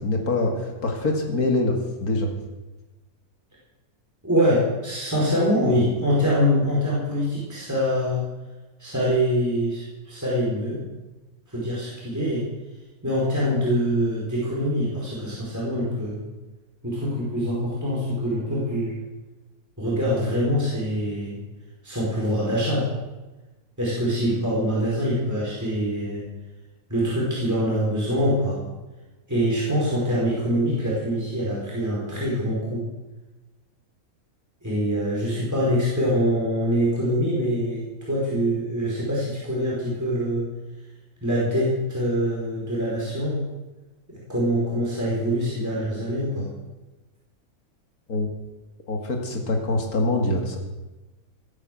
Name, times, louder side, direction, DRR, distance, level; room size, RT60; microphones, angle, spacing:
voice 1, 0.0-2.3 48.1-48.3 48.9-50.6, left 2 dB, 75° left, 2 dB, 2.7 m, -24 dB
voice 2, 4.2-8.2 8.8-10.8 11.5-12.4 13.0-16.2 16.8-18.9 19.8-21.4 21.8-22.9 23.8-26.2 26.9-28.6 29.3-32.8 34.6-40.4 41.2-43.4 44.1-46.5, equal, 10° right, -6 dB, 4.9 m, -24 dB
18.0 x 9.9 x 7.8 m, 1.1 s
omnidirectional pair, 1.6 m